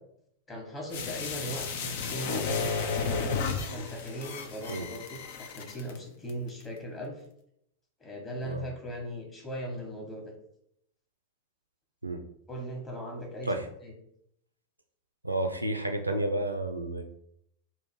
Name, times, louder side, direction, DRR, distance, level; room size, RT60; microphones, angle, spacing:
voice 1, 0.5-3.4 3.7-7.2 8.0-10.2 12.5-13.5 13.8-13.9, equal, 20° left, 0 dB, 1.4 m, -39 dB
sound 1, 0.9-6.0 6.3-6.4, left 5 dB, 50° left, 0.5 m, -33 dB
voice 2, 15.2-17.0, right 1 dB, 85° right, 5 dB, 0.5 m, -31 dB
3.8 x 2.6 x 4.6 m, 0.72 s
figure-of-eight pair, 90°, 0 cm